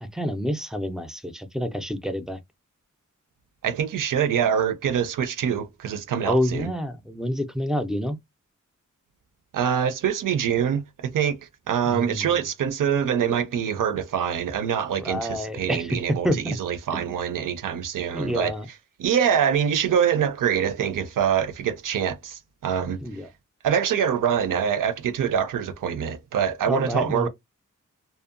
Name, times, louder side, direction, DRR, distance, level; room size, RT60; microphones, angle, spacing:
voice 1, 0.0-2.4 6.2-8.2 11.9-12.4 15.0-16.0 16.2-16.6 16.9-17.1 18.1-18.7 23.0-23.3 26.6-27.3, equal, ahead, 0.3 m, -28 dB
voice 2, 3.6-6.7 9.5-11.4 11.7-18.5 19.0-23.0 23.6-27.3, right 8 dB, 80° right, 0.5 m, -24 dB
2.7 x 2.0 x 2.5 m
wide cardioid pair, 110°, 32 cm